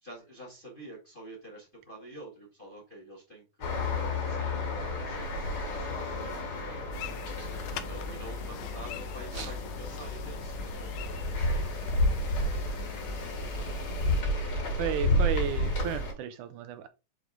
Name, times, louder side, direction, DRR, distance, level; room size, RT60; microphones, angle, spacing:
voice 1, 0.0-3.7 4.0-6.9 7.8-11.6 12.4-12.8 13.6-14.4, right 1 dB, 20° left, 1.7 m, -48 dB
sound 1, 3.6-16.1, left 1 dB, 40° left, 3.0 m, -31 dB
sound 2, 6.9-14.2, left 7 dB, 85° left, 2.3 m, -40 dB
voice 2, 14.8-16.9, right 9 dB, 80° right, 1.9 m, -33 dB
6.4 x 4.6 x 3.6 m
omnidirectional pair, 3.8 m